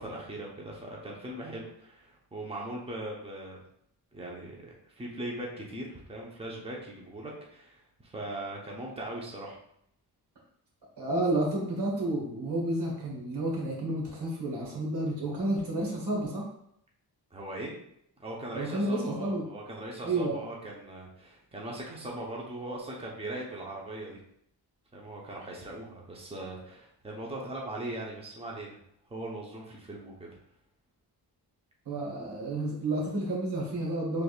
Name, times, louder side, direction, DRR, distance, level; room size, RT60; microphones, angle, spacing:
voice 1, 0.0-3.6 4.1-9.6 17.3-17.7 18.2-24.2 24.9-28.7 29.1-30.3, right 1 dB, 15° right, -2 dB, 0.9 m, -40 dB
voice 2, 11.0-16.4 18.5-19.4 20.0-20.4 31.8-34.2, right 1 dB, 85° right, -2 dB, 1.4 m, -30 dB
4.7 x 3.4 x 2.4 m, 0.71 s
wide cardioid pair, 100°, 40 cm